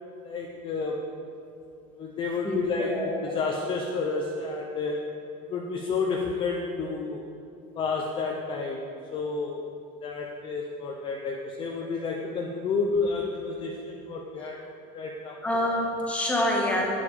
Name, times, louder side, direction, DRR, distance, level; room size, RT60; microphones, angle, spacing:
voice 1, 0.2-1.0 1.9-5.0 5.5-7.2 7.8-9.6 10.0-14.6 14.9-15.4, left 4 dB, 30° left, 0 dB, 0.8 m, -30 dB
voice 2, 2.4-3.1 15.4-16.9, left 1 dB, 5° left, -2 dB, 1.7 m, -26 dB
12.0 x 8.9 x 5.0 m, 2.7 s
cardioid pair, 165°, 18 cm